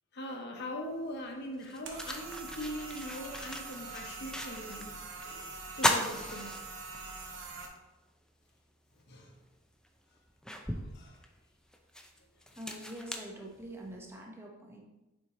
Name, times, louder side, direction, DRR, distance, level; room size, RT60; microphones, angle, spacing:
voice 1, 0.1-4.9 5.2-5.5 5.8-6.7 9.1-9.3 10.6-11.2, equal, 55° left, 2 dB, 1.0 m, -41 dB
sound 1, 0.9-1.0 1.5-4.9 5.2-5.3 5.7-7.2 7.7-7.8 9.2-9.3 9.8-14.0, left 1 dB, 5° left, 0.4 m, -36 dB
sound 2, 1.8-7.7, right 3 dB, 65° right, 0.8 m, -44 dB
voice 2, 12.6-14.8, right 1 dB, 10° right, -1 dB, 1.0 m, -45 dB
7.1 x 4.4 x 3.0 m, 1.0 s
head